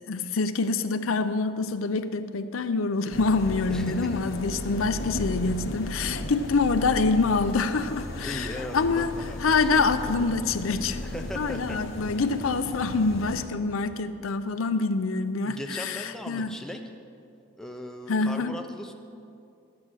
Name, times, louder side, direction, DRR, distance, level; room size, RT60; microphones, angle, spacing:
voice 1, 0.1-9.1 9.4-11.0 11.4-16.5 18.1-18.5, left 4 dB, 85° left, 10 dB, 0.6 m, -26 dB
sound 1, 3.1-13.5, left 1 dB, 65° left, 1.0 m, -35 dB
voice 2, 3.7-4.1 8.2-9.9 11.0-11.8 15.4-16.8 17.6-18.9, equal, 5° left, 3 dB, 0.6 m, -38 dB
12.0 x 8.6 x 6.2 m, 2.5 s
head